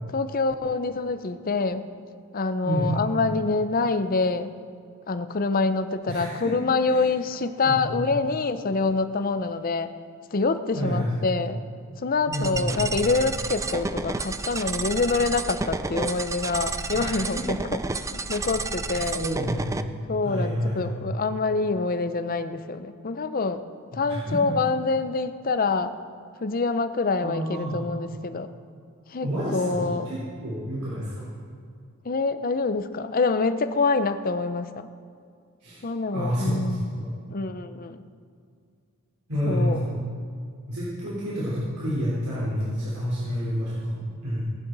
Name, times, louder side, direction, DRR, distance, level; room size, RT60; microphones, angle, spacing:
voice 1, 0.1-1.8 2.3-4.5 5.1-9.9 10.3-11.6 12.0-17.8 18.1-19.2 20.1-23.7 23.9-25.9 26.4-28.5 29.1-30.1 32.0-34.9 35.8-36.9 37.3-38.0 39.5-39.8, left 3 dB, 40° left, 11 dB, 0.6 m, -26 dB
voice 2, 2.6-2.9 6.1-6.3 6.9-7.0 7.6-8.0 10.7-11.2 12.3-13.0 16.9-17.4 19.0-19.9 20.2-21.0 23.9-24.4 27.2-27.8 29.2-31.2 35.6-35.8 36.1-37.1 39.3-39.9 40.7-44.4, equal, 90° right, -9 dB, 3.7 m, -29 dB
sound 1, 12.3-19.8, right 3 dB, 15° right, 0.4 m, -31 dB
18.5 x 11.0 x 4.0 m, 2.3 s
head